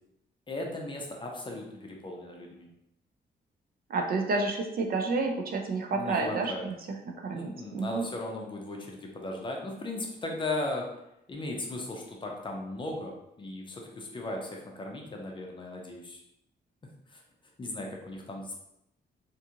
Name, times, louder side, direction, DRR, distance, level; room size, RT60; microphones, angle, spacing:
voice 1, 0.5-2.7 5.9-6.7 7.3-10.9 11.3-16.2 17.1-17.2 17.6-18.5, left 2 dB, 25° left, 0 dB, 0.5 m, -37 dB
voice 2, 3.9-6.7 7.1-8.0, right 3 dB, 50° right, 3 dB, 0.4 m, -30 dB
2.6 x 2.4 x 2.8 m, 0.82 s
wide cardioid pair, 140°, 19 cm